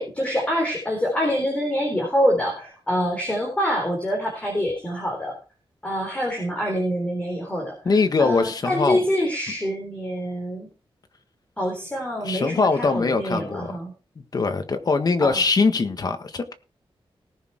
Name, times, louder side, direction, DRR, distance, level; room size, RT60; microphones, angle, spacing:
voice 1, 0.0-5.3 5.8-7.7 8.2-10.7 11.6-13.9 15.2-15.4, equal, 15° left, 1 dB, 3.7 m, -25 dB
voice 2, 7.8-9.0 12.2-13.8 14.2-16.4, left 4 dB, 40° left, 8 dB, 1.5 m, -22 dB
18.5 x 6.5 x 4.5 m, 0.33 s
wide cardioid pair, 175°, 10 cm